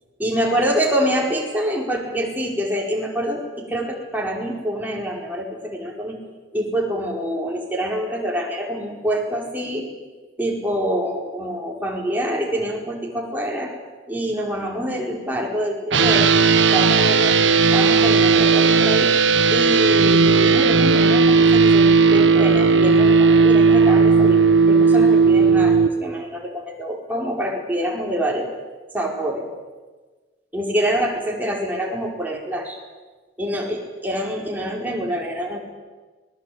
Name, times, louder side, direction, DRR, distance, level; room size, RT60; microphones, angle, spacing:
voice 1, 0.2-6.2 6.5-9.9 10.4-13.7 14.1-16.3 16.7-17.4 17.7-19.2 19.5-28.5 28.9-29.5 30.5-32.8 33.4-35.6, equal, 10° right, -1 dB, 5.0 m, -26 dB
sound 1, 15.9-25.9, right 4 dB, 85° right, 1.4 m, -15 dB
25.5 x 21.0 x 8.9 m, 1.3 s
head